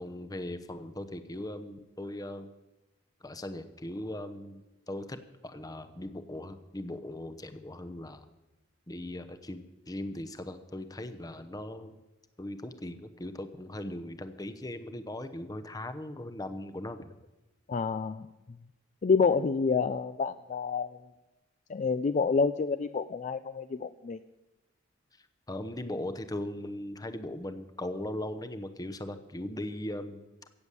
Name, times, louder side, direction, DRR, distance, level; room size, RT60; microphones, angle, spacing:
voice 1, 0.0-2.5 3.2-4.6 4.9-8.2 8.9-12.0 12.4-17.1 25.5-30.2, left 1 dB, 20° left, 9 dB, 0.8 m, -39 dB
voice 2, 17.7-18.3 19.0-21.0 21.7-24.2, left 5 dB, 40° left, 11 dB, 0.4 m, -28 dB
15.5 x 7.1 x 8.2 m, 1.1 s
head